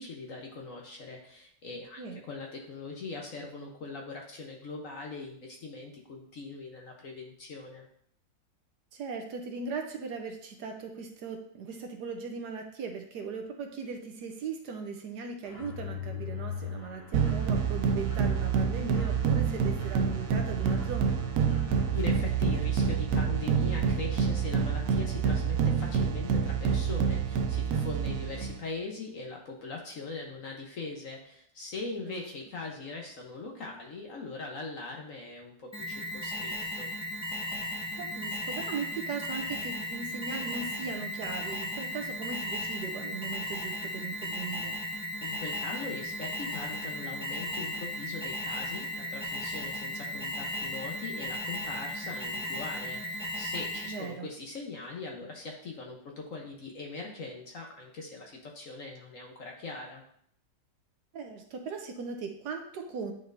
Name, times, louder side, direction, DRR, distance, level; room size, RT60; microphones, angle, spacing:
voice 1, 0.0-7.9 21.9-36.9 45.2-60.0, left 3 dB, 55° left, 0 dB, 1.1 m, -41 dB
voice 2, 8.9-21.2 32.1-32.2 38.0-44.7 53.8-54.3 61.1-63.1, right 5 dB, 70° right, 4 dB, 1.2 m, -38 dB
Mechanisms, 15.4-22.2, left 6 dB, 70° left, 3.2 m, -43 dB
sound 1, 17.1-28.6, right 6 dB, 85° right, 0.7 m, -27 dB
Alarm, 35.7-54.1, left 1 dB, 5° right, 0.8 m, -36 dB
9.4 x 4.4 x 2.6 m, 0.65 s
omnidirectional pair, 2.0 m